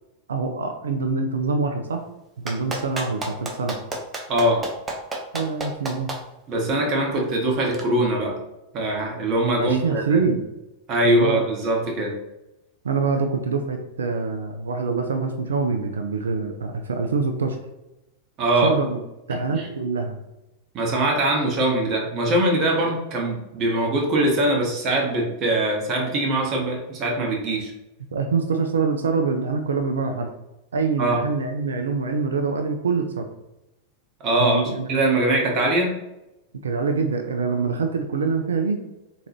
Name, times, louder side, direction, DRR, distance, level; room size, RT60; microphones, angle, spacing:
voice 1, 0.3-2.0 2.4-3.8 5.3-6.1 9.6-10.4 11.0-11.4 12.8-17.6 18.6-18.9 19.3-20.2 28.1-30.3 30.7-33.3 34.4-34.9 36.6-38.8, right 4 dB, 70° right, 5 dB, 0.4 m, -25 dB
Clapping, 2.5-6.2 7.7-7.8, right 2 dB, 15° right, 0.7 m, -29 dB
voice 2, 4.3-4.6 6.5-8.4 8.7-10.2 10.9-12.2 18.4-18.7 19.5-19.7 20.7-27.7 31.0-31.2 34.2-34.6 34.9-36.0, right 1 dB, 35° right, 0 dB, 1.0 m, -22 dB
3.7 x 2.9 x 2.8 m, 0.94 s
figure-of-eight pair, 90°, 0 cm